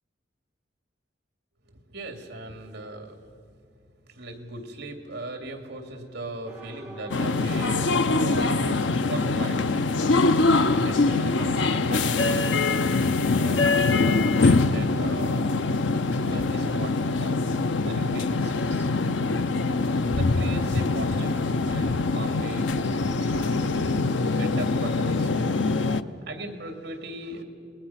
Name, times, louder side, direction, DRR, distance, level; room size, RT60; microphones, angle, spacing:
voice 1, 1.6-3.2 4.1-9.9 10.6-12.6 13.3-15.5 16.3-17.5 17.8-18.9 19.8-27.4, right 1 dB, 60° right, 5 dB, 2.6 m, -38 dB
sound 1, 6.5-14.1, right 1 dB, 10° right, 4.1 m, -47 dB
sound 2, 7.1-26.0, left 3 dB, 75° left, 0.6 m, -23 dB
28.0 x 20.5 x 5.9 m, 2.5 s
head